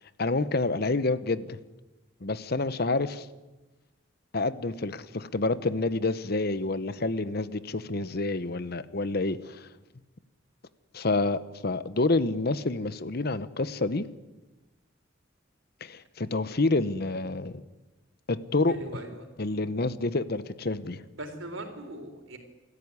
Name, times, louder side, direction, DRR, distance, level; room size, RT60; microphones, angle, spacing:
voice 1, 0.2-1.6 2.2-3.3 4.3-9.7 10.9-14.1 15.8-17.6 18.3-18.8 19.4-21.0, left 2 dB, 50° left, 0.9 m, -28 dB
voice 2, 18.7-19.3 21.1-22.4, right 1 dB, 75° right, 4.1 m, -40 dB
28.0 x 13.5 x 9.7 m
head